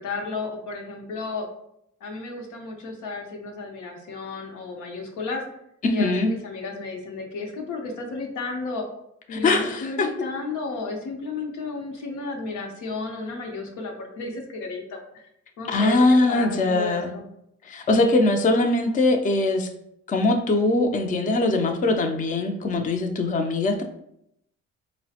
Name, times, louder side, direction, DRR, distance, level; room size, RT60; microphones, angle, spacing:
voice 1, 0.0-1.5 2.0-5.4 5.9-8.8 9.3-15.2 15.6-17.3, left 3 dB, 85° left, 1 dB, 0.7 m, -33 dB
voice 2, 5.8-6.3 9.3-10.1 15.7-17.1 17.6-19.7 20.1-23.8, left 2 dB, 25° left, 5 dB, 0.4 m, -21 dB
3.8 x 2.0 x 2.8 m, 0.77 s
cardioid pair, 90°, 30 cm